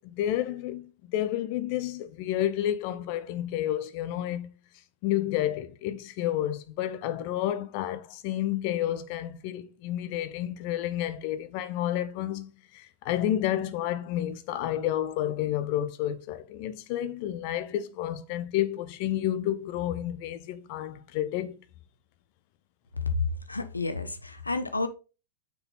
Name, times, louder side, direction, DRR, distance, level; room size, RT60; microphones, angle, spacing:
voice 1, 0.0-4.5 5.0-21.6, left 12 dB, 45° left, 0.7 m, -30 dB
voice 2, 23.5-24.9, left 3 dB, 80° left, 0.8 m, -31 dB
6.5 x 4.8 x 4.1 m
figure-of-eight pair, 90°, 0 cm